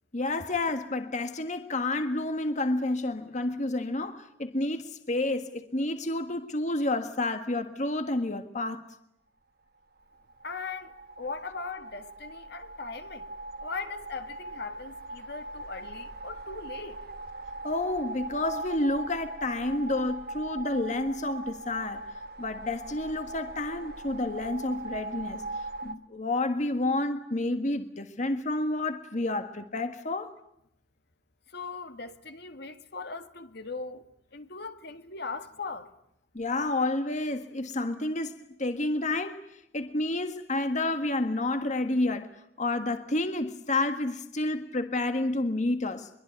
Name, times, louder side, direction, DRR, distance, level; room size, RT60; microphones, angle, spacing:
voice 1, 0.1-8.9 17.6-22.0 22.4-25.4 25.8-30.3 36.3-38.3 38.6-42.3 42.6-46.1, left 2 dB, 40° left, 1.6 m, -30 dB
sound 1, 10.0-25.9, right 2 dB, 55° right, 1.6 m, -40 dB
voice 2, 10.4-13.2 13.6-17.0 31.5-34.1 34.3-35.9, left 4 dB, 60° left, 1.8 m, -39 dB
23.5 x 23.0 x 9.4 m
head